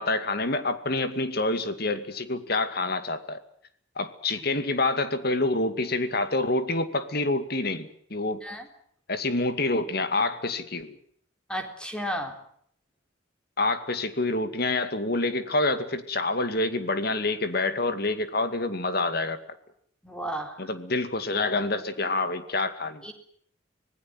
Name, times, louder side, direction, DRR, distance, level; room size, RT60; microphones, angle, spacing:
voice 1, 0.0-3.4 4.0-8.4 9.1-11.0 13.6-19.4 20.6-23.0, left 2 dB, 55° left, 10 dB, 2.3 m, -27 dB
voice 2, 11.5-12.3 20.0-20.7 23.0-23.1, equal, 5° left, 4 dB, 3.8 m, -33 dB
25.5 x 19.5 x 7.7 m, 0.64 s
head